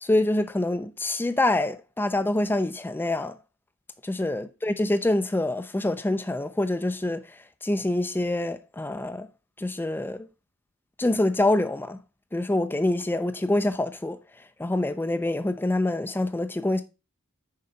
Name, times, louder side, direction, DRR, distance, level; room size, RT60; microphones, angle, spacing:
voice 1, 0.0-3.4 4.0-7.2 7.6-9.3 9.6-10.3 11.0-12.0 12.3-14.2 14.6-16.8, left 1 dB, 10° left, 0.4 m, -26 dB
6.6 x 4.8 x 5.5 m
head